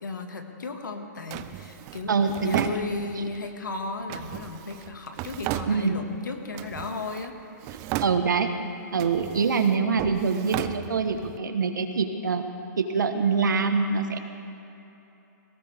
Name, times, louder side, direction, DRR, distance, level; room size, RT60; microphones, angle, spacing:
voice 1, 0.0-2.1 2.4-7.4, left 3 dB, 85° left, 4 dB, 1.9 m, -35 dB
Drawer open or close, 1.3-3.4 4.1-6.2 6.5-7.3 7.6-8.6 8.9-11.4, right 14 dB, 30° right, 0.5 m, -35 dB
voice 2, 2.0-2.8 5.7-6.0 8.0-8.5 8.9-12.4 12.8-14.2, right 5 dB, 85° right, 7 dB, 1.3 m, -24 dB
18.5 x 18.0 x 3.6 m, 3.0 s
hypercardioid pair, 135°, 10 cm